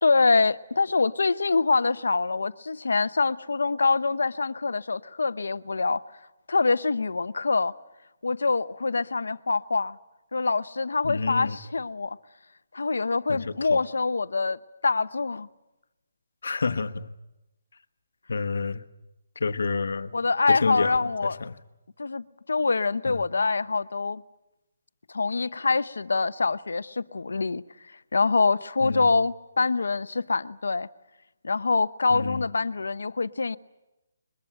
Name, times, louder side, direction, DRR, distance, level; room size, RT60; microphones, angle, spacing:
voice 1, 0.0-6.0 6.5-7.7 8.2-10.0 10.3-12.2 12.7-15.5 20.1-21.4 22.0-24.2 25.1-27.6 28.1-30.9 31.4-33.6, left 4 dB, 90° left, 0.8 m, -25 dB
voice 2, 11.0-11.6 13.3-13.8 16.4-17.1 18.3-18.8 19.3-20.1 20.5-21.5 23.1-23.2 28.8-29.1 32.1-32.5, left 4 dB, 75° left, 1.3 m, -29 dB
22.5 x 22.0 x 9.0 m
hypercardioid pair, 170°, 0 cm